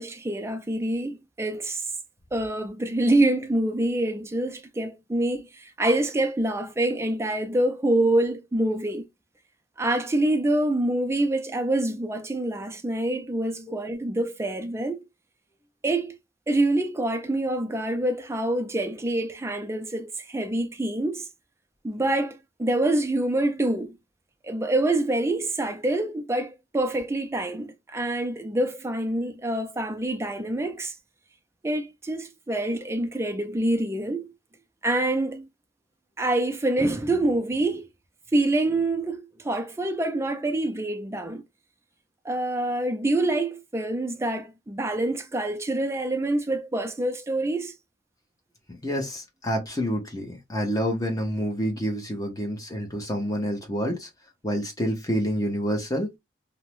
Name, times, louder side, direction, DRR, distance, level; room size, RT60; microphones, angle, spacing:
voice 1, 0.0-1.9 2.3-9.1 9.8-15.0 15.8-16.1 16.5-21.3 21.8-24.0 24.4-31.0 31.6-34.3 34.8-35.5 36.2-37.9 38.3-41.4 42.2-47.7, right 1 dB, 15° right, 0.4 m, -26 dB
voice 2, 48.8-54.1 54.4-56.1, equal, 20° left, 0.8 m, -28 dB
2.6 x 2.1 x 2.9 m
head